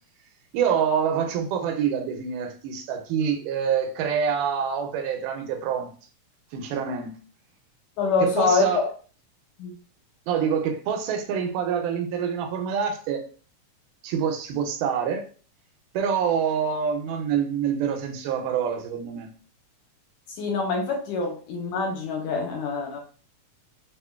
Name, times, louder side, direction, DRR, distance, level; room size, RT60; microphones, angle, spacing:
voice 1, 0.5-5.9 6.5-7.1 8.2-8.8 10.3-13.2 14.0-15.3 15.9-19.3, right 7 dB, 85° right, 4 dB, 2.1 m, -26 dB
voice 2, 8.0-8.9 9.6-9.8 20.3-23.0, left 4 dB, 75° left, 1 dB, 1.9 m, -25 dB
6.1 x 2.2 x 2.2 m, 0.39 s
omnidirectional pair, 3.7 m